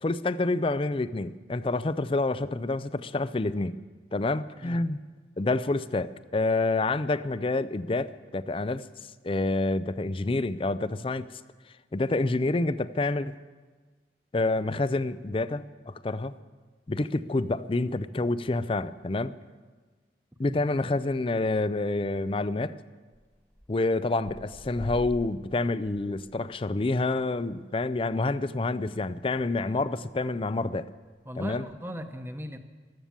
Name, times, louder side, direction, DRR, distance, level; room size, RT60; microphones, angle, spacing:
voice 1, 0.0-3.8 4.1-5.0 5.4-8.9 9.2-11.3 11.9-13.3 14.3-16.4 16.9-19.3 20.4-22.8 23.7-30.9 31.4-31.7, left 2 dB, 30° left, 0.5 m, -28 dB
sound 1, 20.6-21.1 21.4-21.7 22.0-22.1 22.3-22.4 23.1-23.7 24.0-29.1 29.4-29.5 29.8-30.3 31.0-31.7, equal, 10° left, 1.3 m, -47 dB
voice 2, 29.6-29.9 31.2-32.6, equal, 15° right, 0.9 m, -39 dB
14.5 x 13.0 x 7.4 m
head